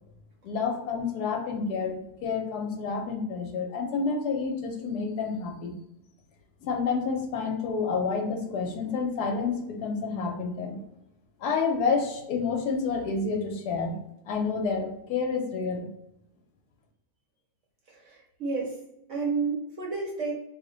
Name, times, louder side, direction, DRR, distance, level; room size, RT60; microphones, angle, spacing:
voice 1, 0.4-5.8 6.6-10.8 11.4-14.0 14.2-15.9, left 5 dB, 75° left, 2 dB, 1.1 m, -29 dB
voice 2, 17.9-18.8 19.1-20.3, right 4 dB, 60° right, -2 dB, 0.9 m, -31 dB
2.8 x 2.1 x 3.7 m, 0.82 s
omnidirectional pair, 1.8 m